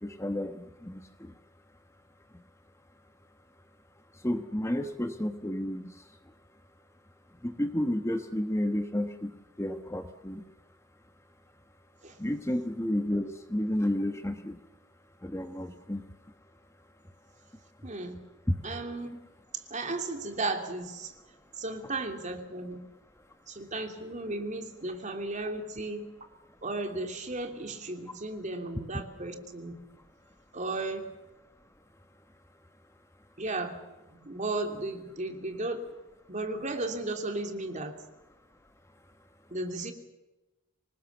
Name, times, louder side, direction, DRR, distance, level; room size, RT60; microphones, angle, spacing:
voice 1, 0.0-1.4 2.3-2.4 4.1-6.3 7.4-10.4 12.2-14.6 15.2-16.0 18.5-18.6, left 1 dB, 15° left, 7 dB, 1.2 m, -32 dB
voice 2, 17.8-18.2 18.6-19.2 19.5-21.2 21.5-22.8 23.5-26.1 26.6-29.7 30.5-31.1 33.4-33.8 34.1-36.0 36.3-38.0 39.5-39.9, right 2 dB, 35° right, 5 dB, 3.0 m, -35 dB
26.0 x 19.5 x 7.2 m, 1.0 s
head